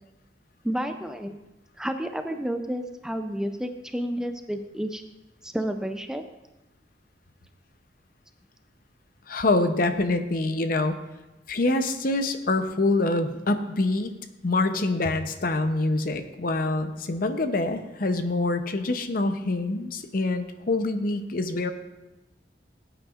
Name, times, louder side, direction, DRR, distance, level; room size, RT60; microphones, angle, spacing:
voice 1, 0.6-1.4 1.8-5.0 5.4-6.2, equal, 5° right, 7 dB, 0.4 m, -30 dB
voice 2, 9.3-11.0 11.5-14.1 14.4-21.7, left 2 dB, 50° left, 8 dB, 0.7 m, -25 dB
17.0 x 8.9 x 2.4 m, 1.0 s
head